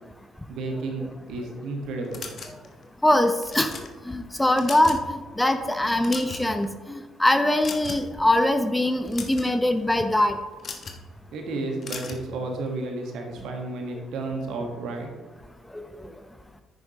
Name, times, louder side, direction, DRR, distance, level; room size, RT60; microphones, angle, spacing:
voice 1, 0.5-2.4 11.3-15.1, right 2 dB, 60° right, 3 dB, 1.6 m, -32 dB
sound 1, 2.1-2.8 3.4-3.9 4.4-5.1 5.4-5.6 5.9-6.7 7.6-8.1 8.9-9.5 10.6-11.0 11.8-12.2, left 5 dB, 45° left, 1.2 m, -37 dB
voice 2, 3.0-3.7 4.0-10.4 15.7-16.1, left 1 dB, 10° left, 7 dB, 0.8 m, -23 dB
10.5 x 9.1 x 3.1 m, 1.3 s
figure-of-eight pair, 45°, 0 cm